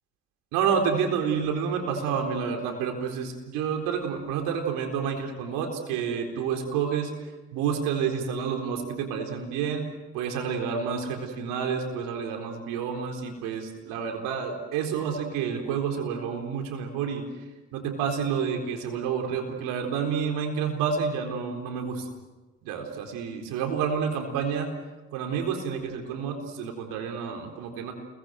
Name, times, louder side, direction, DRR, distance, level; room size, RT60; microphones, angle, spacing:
voice 1, 0.5-7.1 7.5-9.8 10.1-17.3 17.7-22.1 22.6-24.7 25.1-27.9, right 6 dB, 85° right, 3 dB, 4.1 m, -29 dB
29.5 x 23.0 x 7.8 m, 1.2 s
hypercardioid pair, 45°, 32 cm